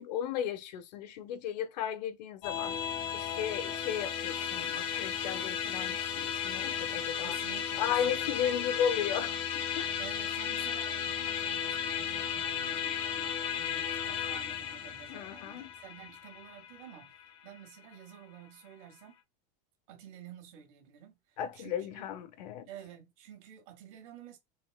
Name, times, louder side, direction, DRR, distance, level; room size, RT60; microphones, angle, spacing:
voice 1, 0.0-2.8 3.1-7.3 7.8-9.4 9.7-9.9 15.1-15.7 21.4-22.7, left 9 dB, 75° left, 0.7 m, -35 dB
Musical instrument, 2.4-17.9, left 8 dB, 25° left, 0.4 m, -35 dB
voice 2, 7.2-8.6 10.0-17.1 17.4-19.2 19.9-22.0 22.7-24.4, right 9 dB, 50° right, 1.2 m, -51 dB
4.1 x 3.1 x 2.3 m
supercardioid pair, 175°, 21 cm